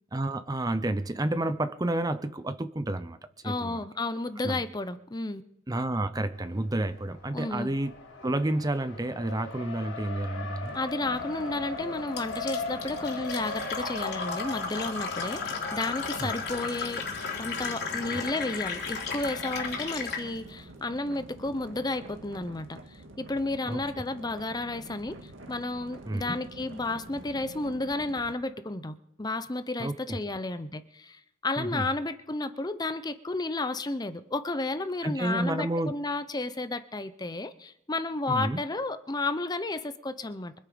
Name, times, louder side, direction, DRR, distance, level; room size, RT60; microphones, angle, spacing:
voice 1, 0.1-3.2 3.4-3.8 4.4-4.6 5.7-7.9 8.2-10.7 16.2-16.3 18.1-18.2 23.7-23.8 26.1-26.4 29.8-30.2 31.6-31.9 35.0-35.9 38.3-38.6, right 1 dB, 20° right, 12 dB, 0.6 m, -30 dB
voice 2, 3.4-5.4 7.3-7.7 10.7-17.0 17.4-22.8 23.2-40.5, left 2 dB, 20° left, 12 dB, 0.7 m, -32 dB
Race car auto racing, 6.3-19.0, left 3 dB, 80° left, 4.1 m, -40 dB
sound 1, 10.6-28.3, right 1 dB, 75° right, 1.9 m, -47 dB
Fill (with liquid), 12.2-20.3, left 5 dB, 55° left, 3.4 m, -34 dB
24.5 x 8.6 x 5.1 m, 0.85 s
head